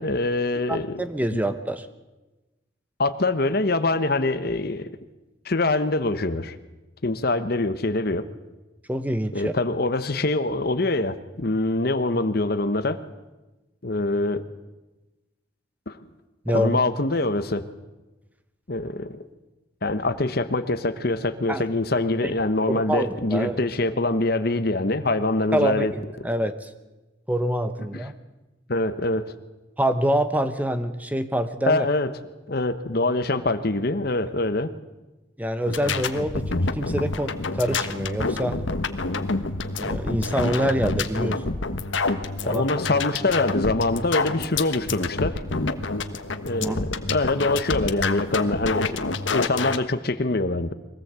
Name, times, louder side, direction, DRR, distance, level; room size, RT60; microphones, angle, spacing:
voice 1, 0.0-1.0 1.3-1.4 3.0-4.9 5.4-6.5 7.0-8.3 9.3-13.0 13.8-14.4 15.9-16.0 16.5-17.7 18.7-19.2 19.8-25.9 27.9-28.0 28.7-29.3 31.7-32.1 32.5-34.7 42.4-45.4 46.4-50.7, left 2 dB, 55° left, 11 dB, 1.1 m, -24 dB
voice 2, 0.7-1.9 8.9-9.5 16.4-16.8 21.5-21.7 22.2-22.3 22.7-23.6 25.5-26.7 27.3-28.1 29.8-31.9 35.4-38.6 39.8-41.4 42.4-42.6 46.6-46.8, equal, 10° right, 9 dB, 1.1 m, -26 dB
sound 1, 35.7-49.8, left 3 dB, 90° left, 1.3 m, -28 dB
23.5 x 18.0 x 8.3 m, 1.1 s
head